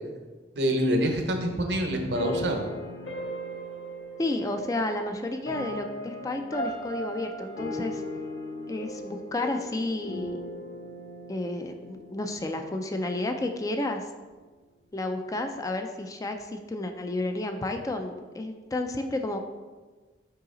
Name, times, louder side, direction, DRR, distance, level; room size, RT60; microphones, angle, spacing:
voice 1, 0.6-2.6, right 1 dB, 70° right, 4 dB, 0.9 m, -26 dB
sound 1, 2.1-13.2, equal, 75° left, 1.4 m, -38 dB
voice 2, 4.2-8.0 8.7-10.4 11.3-14.0 14.9-19.4, left 2 dB, 20° left, 5 dB, 0.4 m, -31 dB
5.6 x 4.8 x 3.9 m, 1.3 s
head